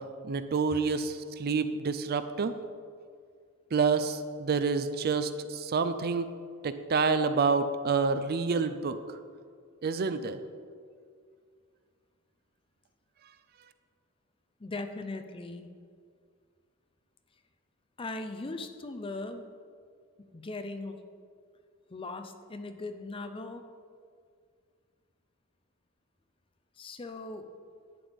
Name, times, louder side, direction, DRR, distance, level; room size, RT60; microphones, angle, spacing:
voice 1, 0.0-2.5 3.7-6.3 6.6-9.0 9.8-10.4, right 4 dB, 45° right, 11 dB, 0.4 m, -28 dB
voice 2, 14.6-15.7 18.0-19.5 20.2-21.0 21.9-23.7 26.8-27.5, left 2 dB, 25° left, 8 dB, 0.5 m, -39 dB
11.0 x 8.9 x 3.5 m, 2.1 s
head